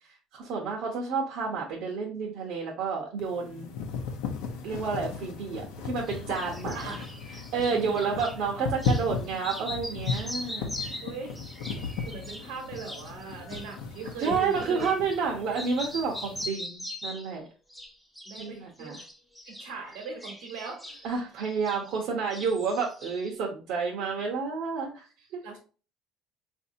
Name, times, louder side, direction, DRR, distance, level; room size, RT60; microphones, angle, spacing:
voice 1, 0.3-3.7 4.6-7.0 7.5-10.7 14.2-17.4 18.4-19.0 21.0-25.1 25.3-25.4, right 5 dB, 70° right, -1 dB, 0.8 m, -30 dB
sound 1, 3.2-16.4, left 5 dB, 90° left, 0.6 m, -36 dB
sound 2, 6.1-8.4 8.8-9.1 9.4-15.3 15.5-17.4 17.7-18.5 18.8-22.0 22.3-23.3, left 1 dB, ahead, 0.6 m, -41 dB
voice 2, 6.7-7.1 7.7-8.3 8.5-8.7 11.0-11.3 11.8-14.9 18.2-19.0 19.6-21.0 25.4-25.6, right 4 dB, 85° right, 2 dB, 1.1 m, -40 dB
4.1 x 2.7 x 2.6 m, 0.37 s
cardioid pair, 110°, 0 cm